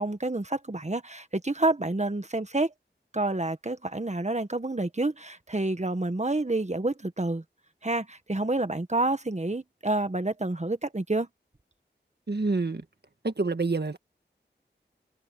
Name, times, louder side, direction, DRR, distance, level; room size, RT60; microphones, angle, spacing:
voice 1, 0.0-2.7 3.1-7.4 7.8-11.3, right 2 dB, 35° right, 1.6 m, -28 dB
voice 2, 12.3-12.8 13.2-14.0, right 3 dB, 65° right, 1.7 m, -27 dB
wide cardioid pair, 45°, 19 cm